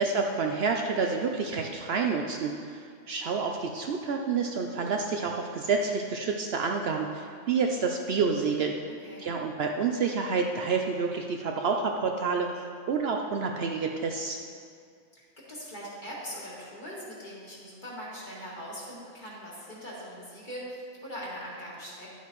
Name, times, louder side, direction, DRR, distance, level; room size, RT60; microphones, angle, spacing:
voice 1, 0.0-8.7 9.2-14.4, right 5 dB, 65° right, 2 dB, 0.7 m, -29 dB
voice 2, 15.1-22.1, equal, 40° left, -7 dB, 2.2 m, -41 dB
11.0 x 8.2 x 3.1 m, 2.3 s
omnidirectional pair, 1.3 m